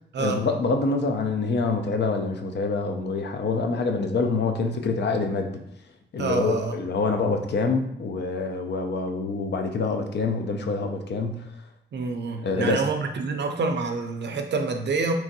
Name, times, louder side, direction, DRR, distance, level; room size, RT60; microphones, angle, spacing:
voice 1, 0.2-5.6 6.1-11.5 12.4-12.8, left 3 dB, 55° left, 4 dB, 0.4 m, -26 dB
voice 2, 6.2-6.7 11.9-15.1, right 4 dB, 60° right, 5 dB, 0.4 m, -27 dB
2.9 x 2.5 x 2.6 m, 0.79 s
cardioid pair, 80°, 21 cm